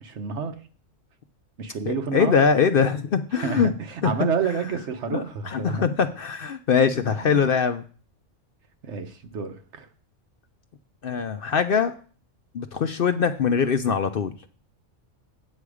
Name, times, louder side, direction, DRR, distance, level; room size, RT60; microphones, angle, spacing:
voice 1, 0.0-0.5 1.6-2.4 3.4-5.8 7.2-7.4 8.8-9.9, right 5 dB, 65° right, 8 dB, 1.2 m, -29 dB
voice 2, 1.9-3.7 4.0-4.1 5.1-7.8 11.0-11.9 12.5-14.3, left 6 dB, 55° left, 9 dB, 0.7 m, -22 dB
8.5 x 8.0 x 4.9 m, 0.41 s
omnidirectional pair, 1.3 m